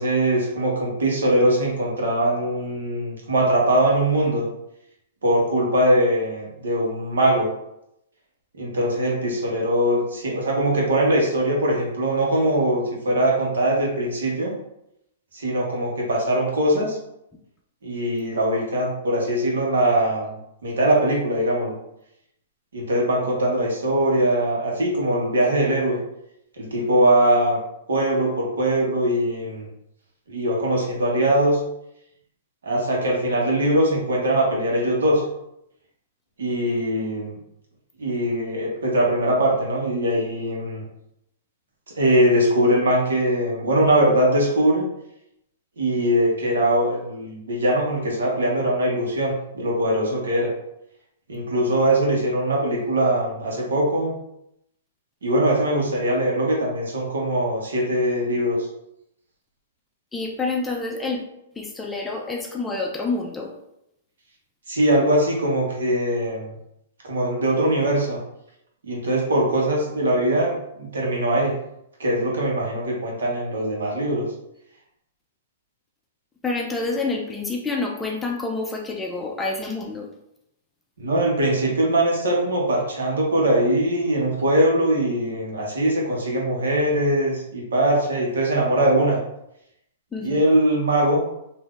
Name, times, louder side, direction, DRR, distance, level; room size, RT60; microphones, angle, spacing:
voice 1, 0.0-4.4 5.2-7.5 8.6-14.5 15.3-17.0 17.8-20.3 20.6-21.7 22.7-26.0 26.6-27.6 27.9-29.7 30.3-31.6 32.6-35.2 36.4-37.4 38.0-40.8 42.0-44.8 45.8-50.5 51.3-54.2 55.2-58.6 64.7-66.5 67.0-68.2 68.8-71.5 72.0-74.2 81.0-89.2 90.2-91.2, right 1 dB, 85° right, -2 dB, 1.1 m, -21 dB
voice 2, 60.1-61.2 61.6-63.5 76.4-80.1 90.1-90.4, left 3 dB, 10° left, 0 dB, 0.4 m, -28 dB
3.5 x 2.6 x 2.4 m, 0.81 s
hypercardioid pair, 135°, 0 cm